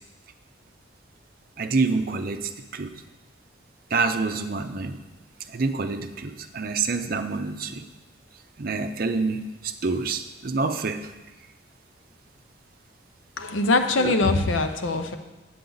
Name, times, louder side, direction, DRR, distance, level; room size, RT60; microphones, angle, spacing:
voice 1, 1.6-2.9 3.9-5.0 5.5-7.8 8.6-11.0 14.0-14.1, right 4 dB, 50° right, 8 dB, 0.5 m, -27 dB
voice 2, 13.4-15.2, left 2 dB, 85° left, 7 dB, 0.7 m, -22 dB
8.4 x 8.3 x 3.9 m, 1.1 s
head